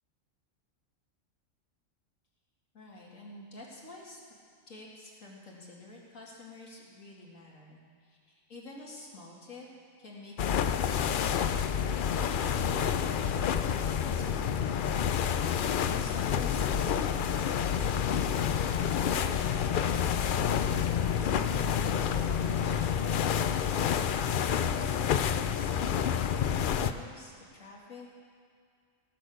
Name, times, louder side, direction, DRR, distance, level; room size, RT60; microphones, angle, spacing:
voice 1, 2.7-4.3 4.7-7.8 8.5-9.7 10.0-15.2 15.6-23.2 24.2-28.2, left 2 dB, 80° left, -3 dB, 2.6 m, -48 dB
sound 1, 10.4-26.9, left 8 dB, 65° left, 0.5 m, -28 dB
sound 2, 17.5-25.1, equal, 5° left, 1.9 m, -53 dB
18.0 x 6.6 x 6.5 m, 2.3 s
omnidirectional pair, 1.3 m